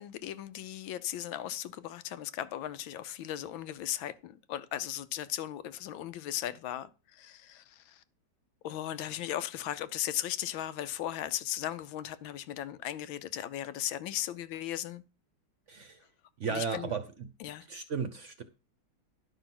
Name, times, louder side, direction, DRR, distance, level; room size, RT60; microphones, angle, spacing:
voice 1, 0.0-8.0 8.6-15.0 16.5-16.9 17.4-17.7, left 12 dB, 85° left, 1.5 m, -37 dB
voice 2, 15.7-16.0 16.4-17.3 17.7-18.4, right 6 dB, 50° right, 0.9 m, -35 dB
11.0 x 5.7 x 6.0 m
omnidirectional pair, 2.1 m